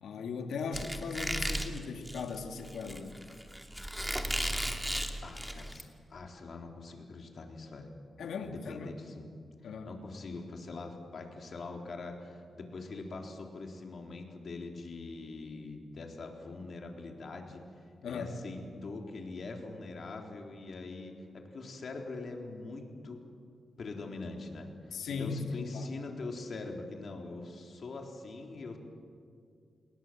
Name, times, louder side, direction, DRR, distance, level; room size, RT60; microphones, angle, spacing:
voice 1, 0.0-3.2 8.2-8.9 9.6-9.9 18.0-18.3 24.9-25.9, left 4 dB, 90° left, 5 dB, 2.4 m, -38 dB
Squeak, 0.7-5.8, equal, 5° right, 2.5 m, -35 dB
voice 2, 5.2-7.9 8.4-9.3 9.8-17.6 18.0-23.2 23.8-28.8, left 3 dB, 60° left, 2 dB, 3.8 m, -43 dB
28.0 x 21.0 x 7.6 m, 2.3 s
cardioid pair, 85°, 0 cm